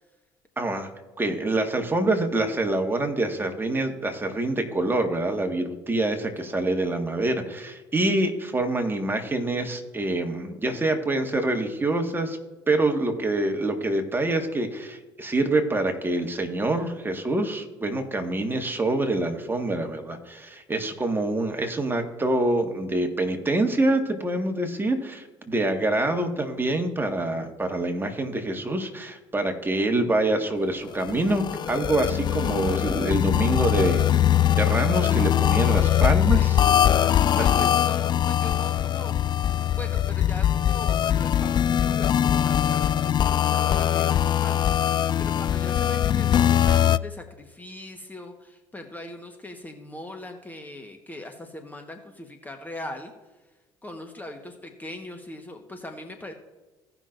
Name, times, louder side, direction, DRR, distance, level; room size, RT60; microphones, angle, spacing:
voice 1, 0.6-0.9 1.2-12.4 12.7-34.2 34.5-36.6 36.9-37.0 37.3-37.6, right 2 dB, 20° right, 4 dB, 1.8 m, -26 dB
sound 1, 31.0-47.0, left 10 dB, 40° left, 0.3 m, -22 dB
voice 2, 35.6-36.6 37.1-39.4 39.7-53.1 53.8-56.3, left 1 dB, 15° left, 4 dB, 1.3 m, -41 dB
17.5 x 6.0 x 2.6 m, 1.2 s
hypercardioid pair, 70°, 12 cm